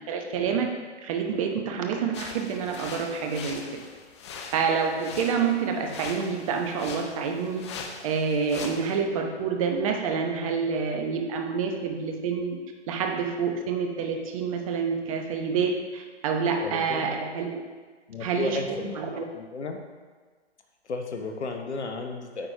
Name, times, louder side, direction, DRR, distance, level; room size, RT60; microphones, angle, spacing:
voice 1, 0.1-0.7 1.0-3.6 4.5-7.7 8.0-12.6 12.9-17.6 18.2-18.6 19.0-19.3, right 6 dB, 30° right, 3 dB, 0.9 m, -27 dB
sound 1, 2.1-9.0, left 5 dB, 25° left, 0.6 m, -41 dB
voice 2, 16.6-17.2 18.1-19.8 20.8-22.5, left 3 dB, 75° left, 4 dB, 1.0 m, -34 dB
8.9 x 4.3 x 4.4 m, 1.4 s
figure-of-eight pair, 135°, 34 cm